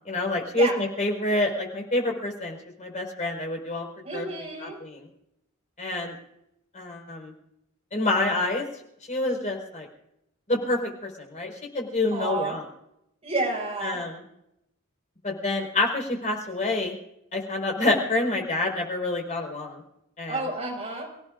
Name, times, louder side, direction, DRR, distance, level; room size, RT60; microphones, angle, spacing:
voice 1, 0.1-3.8 4.1-4.3 4.6-5.1 5.8-6.1 6.7-7.3 7.9-8.7 9.1-9.9 10.5-10.9 11.2-12.6 13.8-14.1 15.2-16.9 17.3-19.8 20.2-20.4, left 2 dB, 35° left, 0 dB, 4.6 m, -27 dB
voice 2, 4.0-4.8 12.1-12.5 13.2-14.0 20.3-21.1, right 2 dB, 30° right, 0 dB, 5.3 m, -30 dB
30.0 x 17.0 x 2.5 m, 0.82 s
head